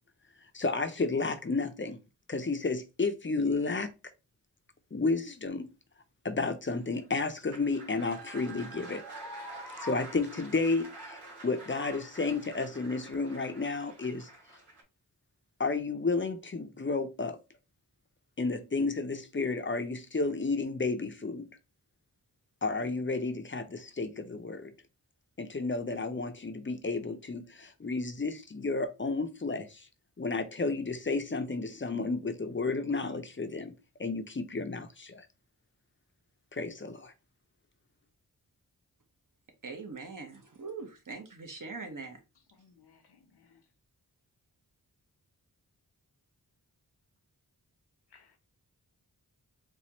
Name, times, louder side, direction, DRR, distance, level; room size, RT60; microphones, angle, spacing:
voice 1, 0.5-2.0 2.3-3.9 4.9-5.7 6.2-9.0 9.8-14.3 15.6-17.4 18.4-21.5 22.6-24.7 25.4-29.9 30.2-35.3 36.5-37.1, left 3 dB, 30° left, 0.6 m, -32 dB
sound 1, 6.7-14.8, right 1 dB, 80° right, 2.1 m, -47 dB
voice 2, 39.6-42.2, right 4 dB, 50° right, 1.0 m, -42 dB
voice 3, 42.5-43.6 48.1-48.4, left 6 dB, 75° left, 0.8 m, -62 dB
4.3 x 2.3 x 2.9 m
wide cardioid pair, 50°, 40 cm